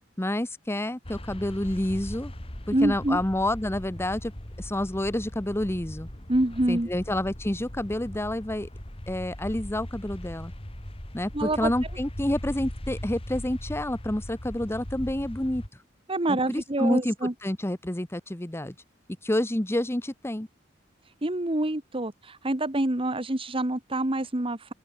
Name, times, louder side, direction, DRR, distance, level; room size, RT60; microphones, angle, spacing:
voice 1, 0.2-2.3 2.7-4.3 4.6-6.1 6.7-8.7 9.1-10.5 11.1-15.6 16.3-18.7 19.2-20.5, left 1 dB, 15° left, 1.0 m, -29 dB
sound 1, 1.0-15.7, equal, 30° left, 2.7 m, -39 dB
voice 2, 2.7-3.2 6.3-6.9 11.3-11.7 16.1-17.3 21.2-24.7, right 1 dB, 30° right, 1.6 m, -26 dB
open air
head